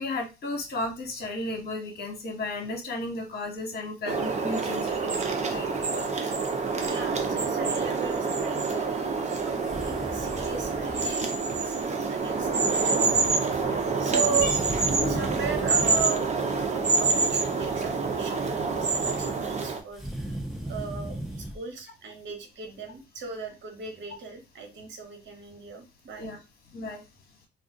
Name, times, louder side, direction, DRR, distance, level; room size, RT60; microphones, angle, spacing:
voice 1, 0.0-6.1 13.0-13.1 13.9-14.6 15.0-15.2 26.2-26.4 26.7-27.0, left 2 dB, 55° left, 2 dB, 1.2 m, -34 dB
sound 1, 4.1-19.8, right 4 dB, 35° right, 0.7 m, -27 dB
voice 2, 6.8-9.2 9.4-14.5 15.0-20.3 20.7-26.3, right 6 dB, 65° right, 4 dB, 1.1 m, -37 dB
sound 2, 9.6-11.1 14.3-16.1 19.9-21.6, right 1 dB, ahead, 0.8 m, -36 dB
2.4 x 2.4 x 3.7 m, 0.27 s
cardioid pair, 90°, 20 cm